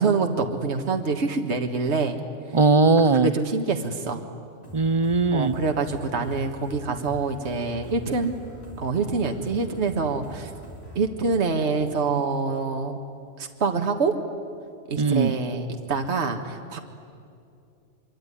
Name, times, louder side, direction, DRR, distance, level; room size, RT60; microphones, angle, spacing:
voice 1, 0.0-2.2 3.0-4.2 5.3-8.4 8.8-10.5 11.0-13.0 13.4-14.1 14.9-16.8, right 4 dB, 60° right, 4 dB, 1.8 m, -26 dB
voice 2, 2.5-3.3 4.7-5.6 15.0-15.4, right 3 dB, 30° right, 13 dB, 0.6 m, -19 dB
sound 1, 4.6-11.0, right 1 dB, 30° left, 6.1 m, -43 dB
25.0 x 23.5 x 9.9 m, 2.5 s
omnidirectional pair, 1.3 m